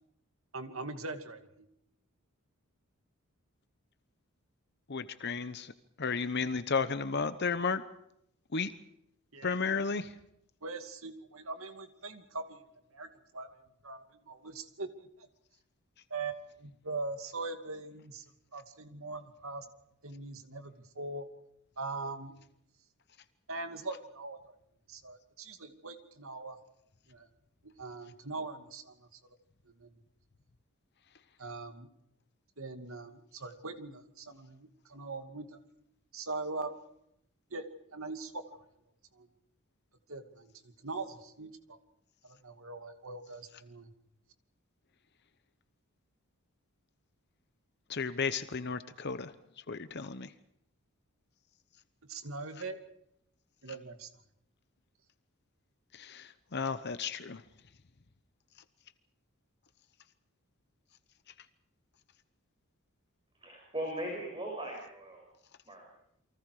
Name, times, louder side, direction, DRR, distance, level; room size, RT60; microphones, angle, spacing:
voice 1, 0.5-1.7 9.3-9.8 10.6-12.6 12.9-13.1 13.3-13.5 13.8-15.3 16.1-18.2 18.5-19.7 20.0-21.3 21.8-22.3 23.5-24.5 24.9-26.6 27.1-27.3 27.8-29.1 29.8-30.0 31.4-31.9 32.6-35.6 36.1-36.7 37.5-37.6 37.9-38.4 39.1-39.3 40.1-41.8 42.2-43.9 52.1-52.8 53.6-54.1, right 3 dB, 70° right, 7 dB, 2.5 m, -41 dB
voice 2, 4.9-5.7 6.0-7.8 8.5-8.7 9.4-10.1 47.9-49.3 49.7-50.3 55.9-57.4, left 5 dB, 50° left, 11 dB, 0.9 m, -33 dB
voice 3, 63.4-65.2 65.6-65.9, right 1 dB, 25° right, 0 dB, 6.7 m, -39 dB
29.5 x 24.0 x 4.9 m, 0.77 s
head